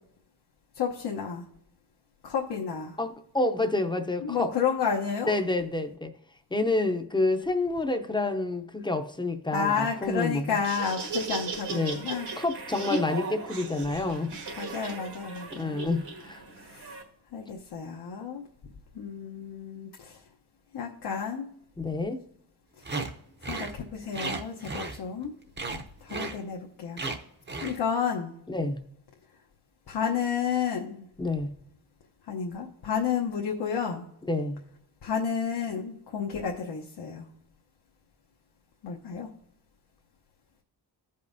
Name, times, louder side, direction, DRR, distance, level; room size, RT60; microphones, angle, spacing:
voice 1, 0.7-1.5 2.2-3.0 4.2-5.4 9.5-12.3 14.6-15.8 16.5-17.0 17.3-18.4 18.9-20.3 20.7-21.5 22.8-22.9 23.4-25.3 26.0-27.0 27.6-28.3 29.9-31.1 32.2-34.1 35.0-37.3 38.8-39.3, left 6 dB, 80° left, 0 dB, 1.0 m, -31 dB
voice 2, 3.0-4.5 5.3-6.1 6.5-10.6 11.7-12.0 12.4-14.3 15.5-16.4 21.8-22.2 28.5-28.8 31.2-31.5 34.3-34.6, left 2 dB, 10° left, 7 dB, 0.6 m, -28 dB
Laughter, 10.5-17.0, right 2 dB, 80° right, 1.9 m, -36 dB
sound 1, 22.8-23.1 23.4-23.7 24.1-25.3 25.6-25.8 26.1-26.4 27.0-27.2 27.5-27.8, right 3 dB, 25° right, 0.7 m, -34 dB
15.5 x 5.4 x 2.6 m, 0.74 s
wide cardioid pair, 155°, 39 cm